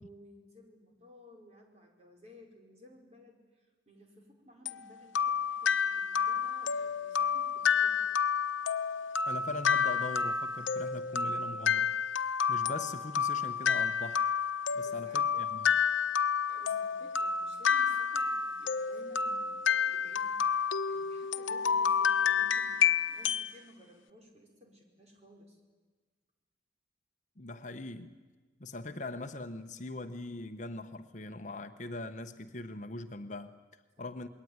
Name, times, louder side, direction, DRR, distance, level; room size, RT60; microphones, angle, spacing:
voice 1, 0.0-8.0 14.7-15.7 16.5-25.6 34.0-34.1, left 1 dB, 35° right, 1 dB, 5.1 m, -57 dB
sound 1, 4.7-23.5, left 6 dB, 90° left, 0.9 m, -30 dB
voice 2, 9.3-11.9 12.5-14.2 14.7-15.7 27.4-28.2 28.6-34.3, left 2 dB, 40° left, 8 dB, 1.0 m, -41 dB
27.5 x 21.5 x 9.6 m, 1.4 s
head